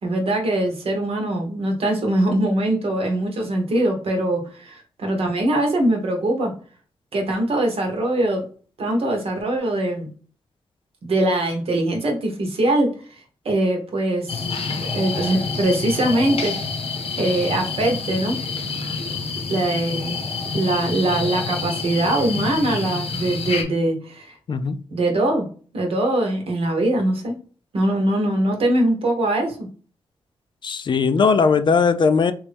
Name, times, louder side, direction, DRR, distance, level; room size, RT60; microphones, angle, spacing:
voice 1, 0.0-6.5 7.1-8.4 8.8-10.1 11.0-12.9 13.4-14.4 14.9-16.5 17.2-18.4 19.5-20.2 20.5-24.3 24.9-25.5 25.7-27.3 27.7-29.6, right 1 dB, 70° right, 1.0 m, -22 dB
sound 1, 14.3-23.6, left 4 dB, 70° left, 0.7 m, -28 dB
voice 2, 30.6-32.3, left 5 dB, 50° left, 0.3 m, -18 dB
3.0 x 2.6 x 3.3 m
cardioid pair, 65°, 10 cm